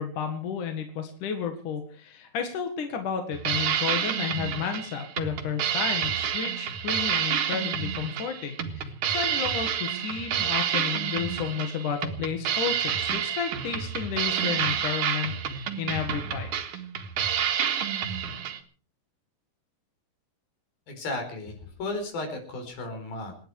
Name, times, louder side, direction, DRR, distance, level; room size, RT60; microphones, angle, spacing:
voice 1, 0.0-16.8, left 7 dB, 60° left, 5 dB, 3.2 m, -32 dB
sound 1, 3.3-18.6, right 8 dB, 65° right, 3.1 m, -29 dB
voice 2, 20.9-23.3, left 2 dB, 80° left, 5 dB, 6.3 m, -34 dB
28.5 x 10.5 x 4.8 m, 0.41 s
omnidirectional pair, 4.2 m